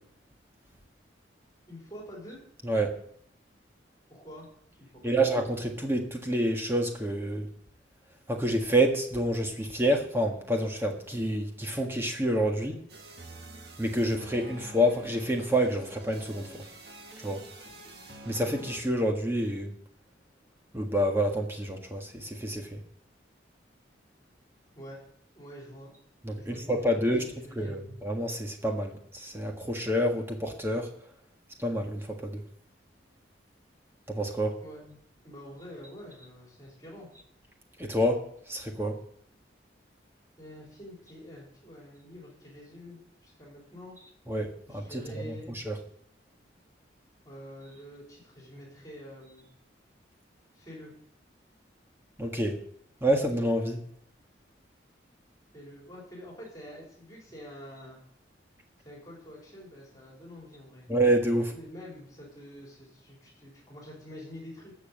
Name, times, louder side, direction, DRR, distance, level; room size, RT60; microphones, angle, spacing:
voice 1, 1.7-2.4 4.1-4.5 4.8-5.3 24.8-25.0 25.3-25.9 26.3-27.8 34.6-34.8 35.2-37.1 40.4-44.0 44.7-45.5 47.2-49.5 50.5-50.9 55.5-58.0 58.8-60.9 61.3-64.8, equal, 20° left, -3 dB, 4.0 m, -47 dB
voice 2, 5.0-7.5 8.3-12.8 13.8-16.5 17.2-17.4 18.2-19.7 20.7-22.8 26.2-27.2 27.5-30.9 31.6-32.4 34.1-34.6 37.8-38.2 38.5-38.9 44.3-45.0 45.3-45.4 45.6-45.7 52.2-52.6 53.0-53.8 60.9-61.5, right 1 dB, 10° right, 2 dB, 1.6 m, -28 dB
sound 1, 12.9-18.8, right 2 dB, 55° right, 1.9 m, -48 dB
13.0 x 7.1 x 7.7 m, 0.67 s
head